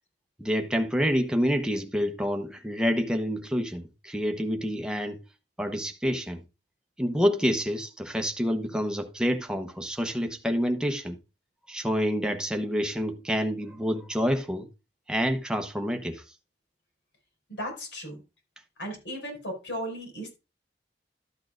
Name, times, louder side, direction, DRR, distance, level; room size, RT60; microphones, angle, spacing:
voice 1, 0.4-5.2 5.6-6.4 7.0-11.2 11.7-14.7 15.1-16.2, equal, 5° right, 0.8 m, -28 dB
voice 2, 17.5-18.2 18.8-20.3, equal, 85° left, 5.4 m, -36 dB
13.0 x 8.5 x 2.5 m
head